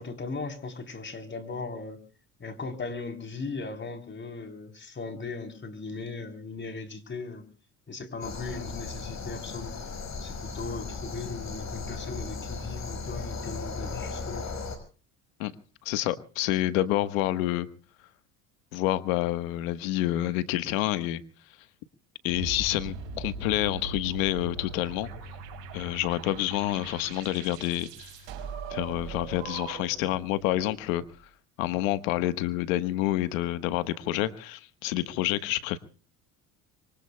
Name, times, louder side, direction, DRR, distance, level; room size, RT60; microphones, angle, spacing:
voice 1, 0.0-2.0 2.4-7.5 7.9-9.8 10.2-14.5, left 4 dB, 30° left, 3.7 m, -38 dB
sound 1, 8.2-14.8, left 4 dB, 45° left, 5.5 m, -37 dB
voice 2, 15.8-17.7 18.7-21.2 22.2-25.1 25.7-28.1 28.7-31.0 31.6-35.8, left 15 dB, 85° left, 1.4 m, -28 dB
sound 2, 22.3-30.1, right 4 dB, 85° right, 5.2 m, -39 dB
26.0 x 24.0 x 2.3 m
supercardioid pair, 80°, 39 cm